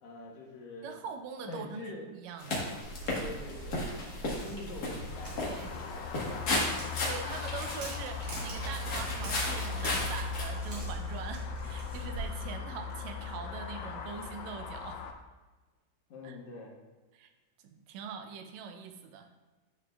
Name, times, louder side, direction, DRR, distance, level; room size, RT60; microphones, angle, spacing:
voice 1, 0.0-1.0 1.5-2.1 3.2-3.8 4.4-6.8 16.1-16.7, left 2 dB, 75° left, -2 dB, 2.6 m, -45 dB
voice 2, 0.8-2.6 5.4-5.7 7.0-15.0 16.2-16.4 17.1-17.3 17.6-19.3, right 6 dB, 80° right, 6 dB, 1.9 m, -43 dB
sound 1, 2.4-10.4, left 2 dB, 40° left, 1.5 m, -35 dB
Walk footsteps, 2.8-12.4, right 3 dB, 55° right, 2.6 m, -45 dB
sound 2, 5.1-15.1, left 5 dB, 90° left, 2.1 m, -38 dB
10.0 x 6.4 x 2.3 m, 1.2 s
omnidirectional pair, 3.4 m